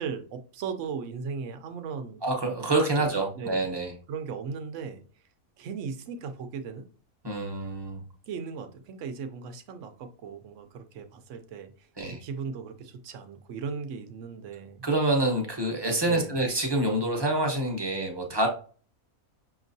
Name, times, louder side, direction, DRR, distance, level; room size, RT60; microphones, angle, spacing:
voice 1, 0.0-2.2 3.0-3.6 4.1-5.0 5.6-6.9 8.3-14.8 16.1-16.4, right 6 dB, 65° right, 8 dB, 0.9 m, -37 dB
voice 2, 2.2-3.9 7.2-8.0 12.0-12.2 14.8-18.5, right 2 dB, 20° right, 2 dB, 0.8 m, -27 dB
6.0 x 3.0 x 2.6 m, 0.40 s
omnidirectional pair, 1.5 m